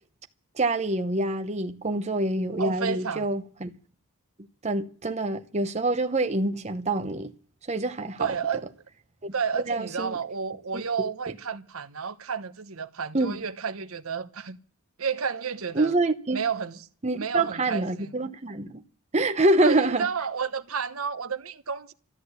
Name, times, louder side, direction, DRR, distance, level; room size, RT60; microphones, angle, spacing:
voice 1, 0.6-3.7 4.6-7.3 7.7-8.3 9.2-9.3 9.7-10.2 10.7-10.8 13.1-13.4 15.7-16.4 17.0-18.8 19.1-20.1, right 2 dB, 30° right, 0.9 m, -26 dB
voice 2, 2.6-3.3 8.2-8.7 9.3-14.6 15.0-16.0 16.3-16.8 17.2-18.1 19.6-21.9, right 6 dB, 70° right, 1.0 m, -31 dB
13.5 x 12.0 x 8.1 m
head